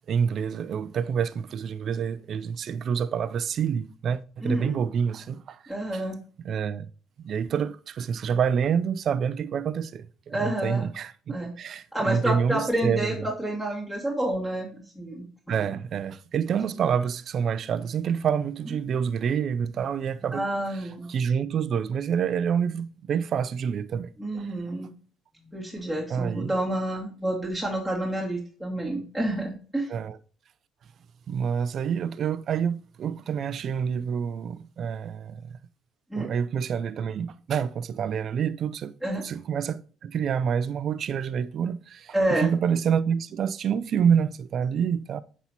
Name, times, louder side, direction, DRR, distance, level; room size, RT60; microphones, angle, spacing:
voice 1, 0.1-5.6 5.9-6.0 6.4-6.9 7.2-13.3 15.5-24.1 24.4-24.5 26.1-26.5 29.9-30.2 31.3-35.6 36.1-38.9 39.2-45.2, right 7 dB, 55° right, 0.5 m, -27 dB
voice 2, 4.4-4.7 5.7-6.2 10.3-10.9 11.3-11.5 11.9-15.2 20.3-21.1 24.2-24.9 25.5-29.9 36.1-36.3 39.0-39.2 42.1-42.5, right 1 dB, 5° left, 2.3 m, -29 dB
8.0 x 5.6 x 2.9 m
hypercardioid pair, 65°, 0 cm